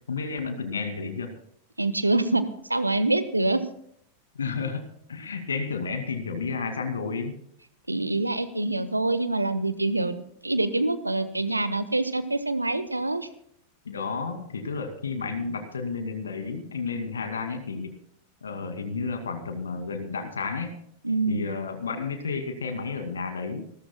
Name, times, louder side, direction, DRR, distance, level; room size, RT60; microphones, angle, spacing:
voice 1, 0.1-1.3 4.3-7.4 13.9-17.9 18.4-20.8 21.3-23.6, left 4 dB, 70° left, 8 dB, 2.3 m, -31 dB
voice 2, 1.8-2.4 2.7-3.6 7.9-13.3 21.0-21.5, right 2 dB, 85° right, 14 dB, 1.1 m, -25 dB
26.5 x 13.5 x 2.2 m, 0.69 s
figure-of-eight pair, 90°, 0 cm